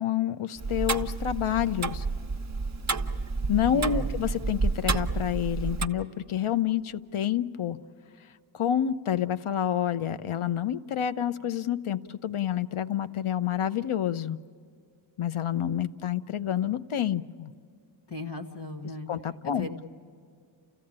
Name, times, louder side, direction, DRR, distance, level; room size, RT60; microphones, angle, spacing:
voice 1, 0.0-2.1 3.5-7.8 8.5-14.4 15.2-17.5 19.1-19.7, left 10 dB, 85° left, 13 dB, 0.7 m, -28 dB
Tick-tock, 0.6-5.9, right 4 dB, 35° right, 0.8 m, -30 dB
voice 2, 3.7-4.2 18.1-19.1 19.4-19.9, left 2 dB, 55° left, 2 dB, 1.8 m, -37 dB
30.0 x 15.0 x 8.7 m, 2.3 s
wide cardioid pair, 60°, 48 cm